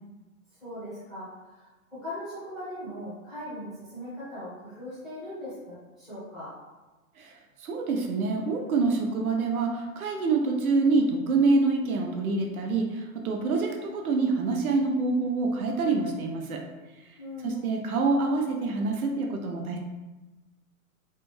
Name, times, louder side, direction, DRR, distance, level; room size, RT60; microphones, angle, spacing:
voice 1, 0.6-1.7 2.0-6.5 17.2-17.7, left 1 dB, ahead, -14 dB, 0.9 m, -39 dB
voice 2, 7.2-16.6 17.4-19.8, right 3 dB, 75° right, 2 dB, 0.7 m, -26 dB
3.3 x 2.2 x 3.1 m, 1.1 s
hypercardioid pair, 160°, 44 cm